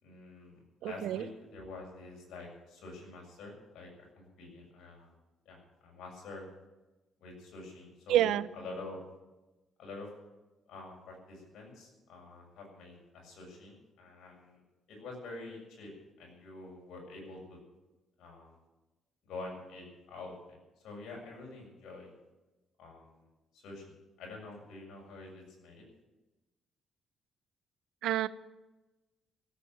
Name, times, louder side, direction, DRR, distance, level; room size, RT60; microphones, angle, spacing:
voice 1, 0.0-3.9 4.2-5.1 5.5-6.4 7.2-9.0 9.8-10.1 10.7-14.6 14.9-15.9 16.2-17.6 18.2-18.6 19.2-20.6 20.8-22.1 22.8-23.3 23.5-25.8, left 2 dB, 80° left, 0 dB, 7.0 m, -47 dB
voice 2, 0.8-1.3 8.1-8.5 28.0-28.3, right 12 dB, 85° right, 17 dB, 0.6 m, -28 dB
16.5 x 9.1 x 9.0 m, 1.1 s
cardioid pair, 90°, 0 cm